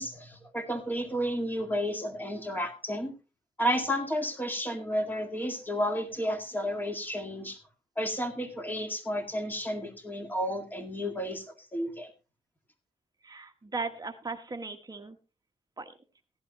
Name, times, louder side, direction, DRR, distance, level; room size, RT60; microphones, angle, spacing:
voice 1, 0.0-3.1 3.6-7.6 8.0-11.5 11.7-12.1, equal, 15° left, 5 dB, 2.1 m, -32 dB
voice 2, 13.2-15.2 15.8-15.9, right 3 dB, 25° right, 6 dB, 1.2 m, -37 dB
16.0 x 11.5 x 3.0 m, 0.32 s
wide cardioid pair, 130°, 14 cm